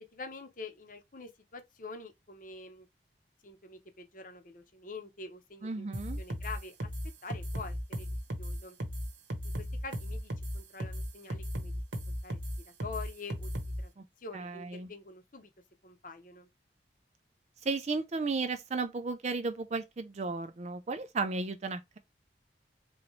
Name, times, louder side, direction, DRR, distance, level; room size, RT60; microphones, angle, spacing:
voice 1, 0.1-2.9 3.4-5.9 6.2-6.9 7.2-8.8 9.6-11.7 12.2-12.4 12.6-13.5 13.8-13.9 14.2-15.5 15.8-16.5, left 3 dB, 45° left, 0.9 m, -46 dB
voice 2, 5.6-6.2 14.0-14.1 14.3-14.9 17.6-22.0, right 3 dB, 35° right, 0.4 m, -34 dB
sound 1, 5.9-13.8, equal, 85° right, 1.0 m, -36 dB
3.9 x 2.9 x 3.1 m
head